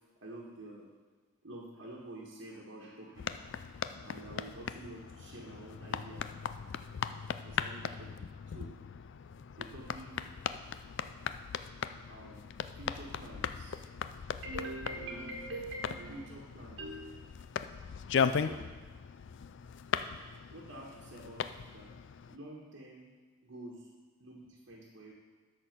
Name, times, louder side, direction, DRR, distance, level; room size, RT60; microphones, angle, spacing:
voice 1, 0.2-0.9 1.4-3.7 4.0-6.3 7.4-8.7 9.6-10.3 12.1-12.5 12.8-13.8 14.4-17.2 18.1-18.7 20.5-22.0 22.3-23.1 23.4-23.9 24.2-25.1, right 1 dB, 60° right, -4 dB, 1.4 m, -46 dB
sound 1, 3.2-22.4, left 7 dB, 55° left, 0.3 m, -38 dB
13.0 x 4.3 x 5.9 m, 1.4 s
head